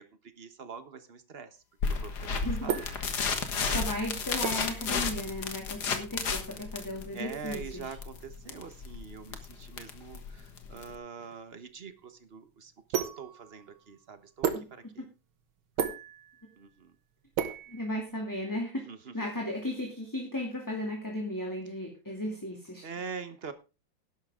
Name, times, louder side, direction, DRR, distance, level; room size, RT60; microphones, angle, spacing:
voice 1, 0.0-2.8 3.6-3.8 7.1-15.1 16.6-16.9 18.9-19.1 22.8-23.5, right 6 dB, 35° right, 11 dB, 1.1 m, -44 dB
sound 1, 1.8-11.0, left 5 dB, 55° left, 2.0 m, -33 dB
voice 2, 2.3-2.7 3.4-7.9 14.5-14.7 15.0-15.1 15.8-15.9 17.7-18.8 19.1-22.9, left 1 dB, 10° left, 0 dB, 2.3 m, -35 dB
sound 2, 2.7-18.5, right 7 dB, 85° right, 2.1 m, -38 dB
12.0 x 11.0 x 3.7 m, 0.30 s
omnidirectional pair, 2.2 m